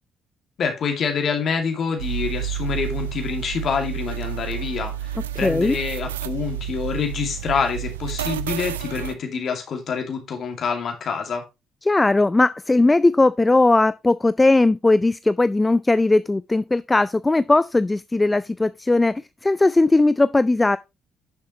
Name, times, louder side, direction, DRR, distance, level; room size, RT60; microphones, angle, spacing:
voice 1, 0.6-11.4, left 6 dB, 55° left, 2.4 m, -26 dB
sound 1, 2.0-9.1, right 11 dB, 85° right, 0.4 m, -30 dB
voice 2, 5.4-5.8 11.8-20.8, left 2 dB, 20° left, 0.4 m, -18 dB
9.7 x 6.6 x 3.1 m
hypercardioid pair, 45°, 0 cm